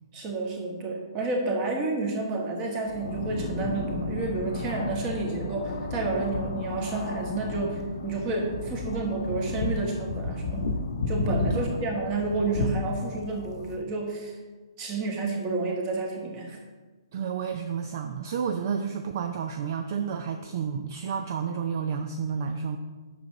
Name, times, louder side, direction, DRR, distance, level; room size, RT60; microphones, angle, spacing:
voice 1, 0.1-10.8 11.1-14.3 14.8-16.6, right 3 dB, 25° right, 2 dB, 1.6 m, -30 dB
sound 1, 2.8-13.8, left 2 dB, 55° left, 0.9 m, -32 dB
voice 2, 17.1-22.8, right 7 dB, 45° right, 7 dB, 0.5 m, -31 dB
8.4 x 6.3 x 3.9 m, 1.3 s
figure-of-eight pair, 125°, 3 cm